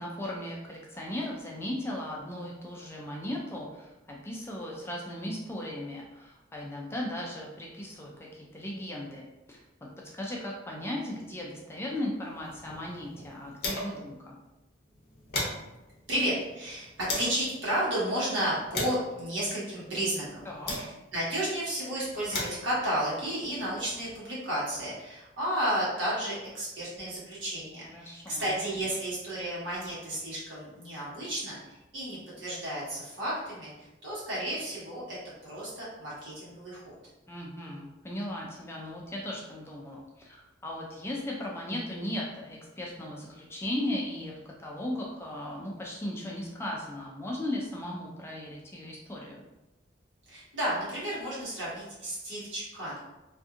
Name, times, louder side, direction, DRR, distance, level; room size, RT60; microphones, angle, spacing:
voice 1, 0.0-9.6 10.1-14.4 20.4-20.7 27.8-28.5 37.3-49.4, left 1 dB, 15° left, -2 dB, 0.3 m, -37 dB
sound 1, 12.3-14.1 14.5-14.6 14.9-17.4 18.1-21.3 22.0-24.2, left 2 dB, 50° left, 0.6 m, -38 dB
voice 2, 16.1-20.4 20.7-35.2 35.4-36.9 50.3-53.0, right 1 dB, 80° right, -8 dB, 1.3 m, -32 dB
2.6 x 2.5 x 2.4 m, 0.99 s
head